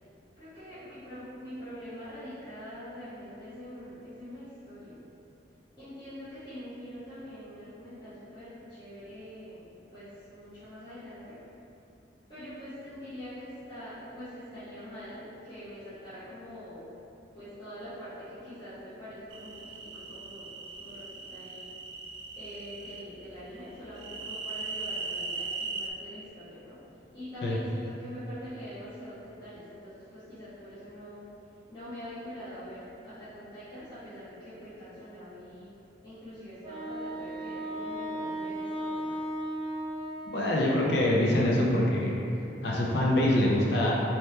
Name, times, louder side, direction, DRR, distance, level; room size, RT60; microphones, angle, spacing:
voice 1, 0.4-5.0 5.8-11.4 12.3-16.8 17.3-21.7 22.3-26.8 27.1-31.2 31.7-35.7 36.0-39.1, equal, 25° left, -17 dB, 1.1 m, -44 dB
sound 1, 19.3-23.0 24.0-25.9, right 3 dB, 80° right, 0.4 m, -38 dB
Wind instrument woodwind instrument, 36.6-41.3, right 1 dB, 25° right, 0.5 m, -36 dB
voice 2, 40.3-42.1 42.6-43.9, left 1 dB, 60° left, -4 dB, 0.5 m, -24 dB
4.4 x 2.8 x 3.2 m, 2.8 s
head